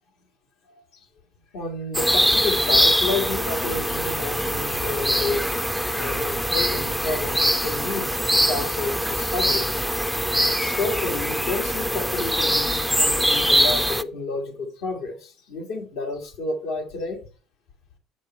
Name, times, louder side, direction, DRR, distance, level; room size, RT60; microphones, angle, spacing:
voice 1, 1.5-9.8 10.4-17.2, left 3 dB, 80° left, 3 dB, 2.2 m, -30 dB
sound 1, 1.9-14.0, equal, ahead, 0.4 m, -23 dB
8.7 x 6.6 x 4.4 m, 0.37 s
cardioid pair, 140°, 0 cm